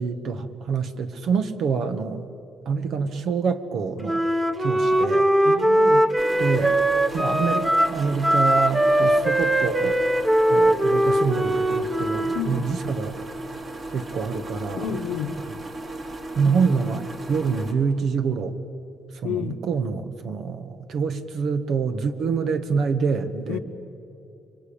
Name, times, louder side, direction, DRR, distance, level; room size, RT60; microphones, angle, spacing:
voice 1, 0.0-2.3 2.6-4.2 4.6-5.3 6.4-6.8 7.1-10.0 10.5-13.2 13.9-14.8 16.3-18.6 19.2-23.6, right 5 dB, 70° right, 9 dB, 1.7 m, -26 dB
Wind instrument woodwind instrument, 4.0-12.5, right 1 dB, 10° right, 1.9 m, -21 dB
voice 2, 5.4-6.1 12.3-12.7 14.8-15.4 19.2-19.6 23.5-23.6, left 8 dB, 90° left, 7 dB, 1.4 m, -30 dB
sound 1, 6.2-17.7, right 2 dB, 45° right, 3.4 m, -36 dB
28.5 x 23.5 x 8.8 m, 2.8 s
cardioid pair, 90°, 0 cm